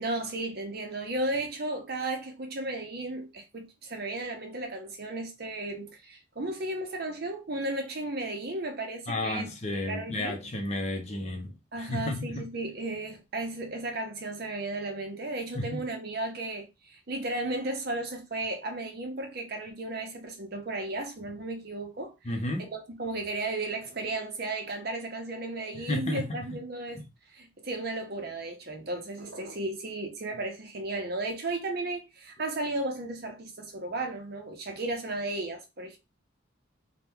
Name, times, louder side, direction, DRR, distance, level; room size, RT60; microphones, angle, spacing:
voice 1, 0.0-9.5 9.9-10.4 11.7-22.1 22.6-27.0 27.3-36.0, right 2 dB, 55° right, 0.8 m, -34 dB
voice 2, 9.1-12.4 15.5-15.8 22.2-22.7 25.7-26.3, left 1 dB, 35° left, 0.7 m, -32 dB
2.9 x 2.2 x 3.5 m
head